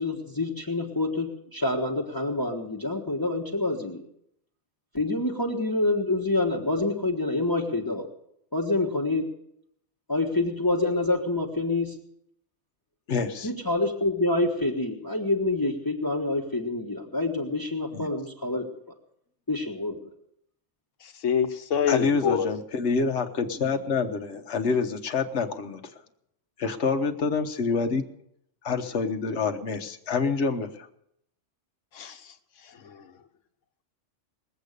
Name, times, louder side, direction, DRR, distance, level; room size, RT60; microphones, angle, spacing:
voice 1, 0.0-4.1 4.9-8.1 8.5-9.3 10.1-12.0 13.4-18.7 19.5-20.0, left 2 dB, 15° left, -1 dB, 1.4 m, -27 dB
voice 2, 13.1-13.5 17.9-18.0 21.9-26.0 26.6-28.1 28.6-30.9, left 4 dB, 65° left, 5 dB, 1.3 m, -27 dB
voice 3, 21.0-22.5 31.9-33.1, left 7 dB, 85° left, 8 dB, 1.3 m, -27 dB
20.5 x 8.1 x 6.6 m, 0.74 s
omnidirectional pair, 1.2 m